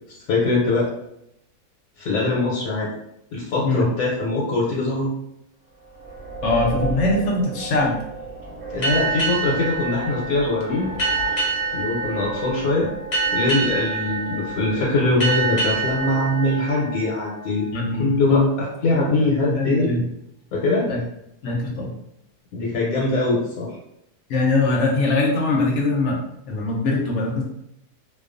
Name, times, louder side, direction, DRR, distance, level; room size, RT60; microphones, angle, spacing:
voice 1, 0.3-0.9 2.0-2.9 3.3-5.1 8.7-10.9 11.7-12.9 13.3-17.7 18.0-18.4 18.8-19.9 20.5-20.9 22.5-23.8, left 2 dB, 85° left, -4 dB, 1.1 m, -22 dB
sound 1, 5.8-17.1, right 3 dB, 70° right, 0.9 m, -35 dB
voice 2, 6.4-8.0 17.7-18.5 18.9-20.0 20.9-21.0 21.4-21.9 24.3-26.2 26.5-27.4, left 3 dB, 65° left, -1 dB, 0.8 m, -22 dB
sound 2, 8.8-18.0, right 3 dB, 35° left, 0.5 m, -27 dB
2.3 x 2.3 x 2.4 m, 0.79 s
omnidirectional pair, 1.5 m